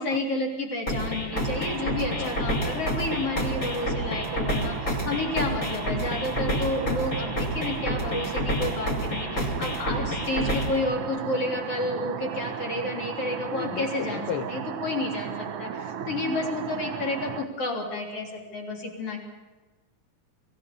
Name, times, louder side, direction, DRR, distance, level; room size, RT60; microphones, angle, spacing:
voice 1, 0.0-19.2, left 2 dB, 50° left, 1 dB, 4.6 m, -31 dB
sound 1, 0.9-10.9, equal, 30° left, 2.6 m, -29 dB
sound 2, 1.3-17.4, right 8 dB, 60° right, 1.7 m, -35 dB
voice 2, 6.8-7.3 13.5-14.5, left 10 dB, 80° left, 13 dB, 1.2 m, -35 dB
24.5 x 15.5 x 6.9 m, 1.3 s
omnidirectional pair, 3.5 m